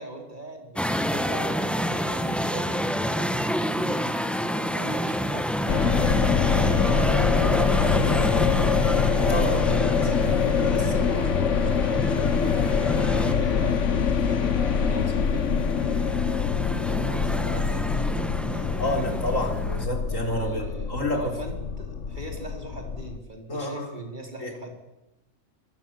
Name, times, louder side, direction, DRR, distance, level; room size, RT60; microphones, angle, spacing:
voice 1, 0.0-8.1 8.6-9.2 9.5-19.2 20.2-24.7, right 1 dB, 35° right, 2 dB, 4.6 m, -40 dB
sound 1, 0.8-19.9, equal, ahead, 1.2 m, -29 dB
sound 2, 2.9-20.6, equal, 80° right, 6.3 m, -49 dB
sound 3, 5.7-23.2, left 6 dB, 70° left, 1.4 m, -24 dB
voice 2, 9.3-9.7 18.8-21.4 23.5-24.0 24.4-24.5, left 1 dB, 90° left, 3 dB, 4.3 m, -29 dB
24.5 x 22.5 x 7.7 m, 0.97 s
omnidirectional pair, 1.3 m